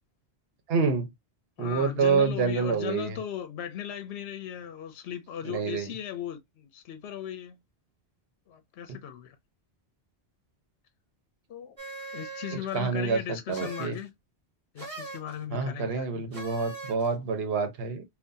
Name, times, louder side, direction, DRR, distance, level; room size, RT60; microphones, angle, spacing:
voice 1, 0.7-1.1 1.6-3.2 5.4-5.9 12.7-14.0 15.5-18.0, right 5 dB, 65° right, 1.0 m, -27 dB
voice 2, 1.6-7.6 8.5-9.4 11.5-11.8 12.1-14.1 14.7-16.3, left 10 dB, 70° left, 0.9 m, -37 dB
sound 1, 11.8-12.8 13.5-14.0 14.8-15.3 16.3-17.1, right 3 dB, 30° right, 1.2 m, -40 dB
3.8 x 2.4 x 2.6 m
omnidirectional pair, 1.1 m